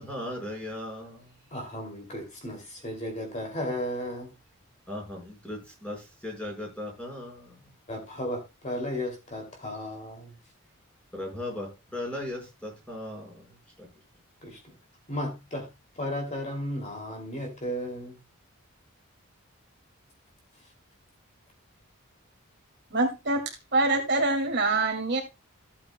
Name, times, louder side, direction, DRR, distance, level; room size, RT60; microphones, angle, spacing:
voice 1, 0.0-1.4 4.9-7.7 11.1-13.9, left 1 dB, 5° left, 4.9 m, -38 dB
voice 2, 1.5-4.3 7.9-10.3 14.4-14.6 15.1-15.7 16.0-18.2, left 1 dB, 35° left, 2.6 m, -34 dB
voice 3, 22.9-23.4 23.7-25.2, right 2 dB, 50° right, 2.3 m, -25 dB
14.5 x 8.5 x 2.2 m
head